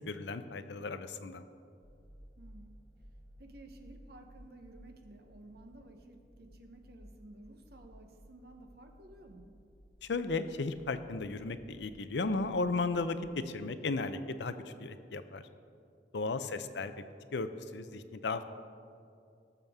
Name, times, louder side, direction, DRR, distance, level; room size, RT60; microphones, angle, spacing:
voice 1, 0.1-1.4 10.0-15.5 16.1-16.9 17.3-18.5, left 3 dB, 70° left, 11 dB, 0.6 m, -35 dB
sound 1, 1.8-13.3, equal, 20° left, 1.2 m, -57 dB
voice 2, 2.4-2.9 3.4-9.6 16.2-16.8, right 1 dB, 60° right, 4 dB, 0.9 m, -54 dB
18.0 x 7.1 x 3.6 m, 2.4 s
head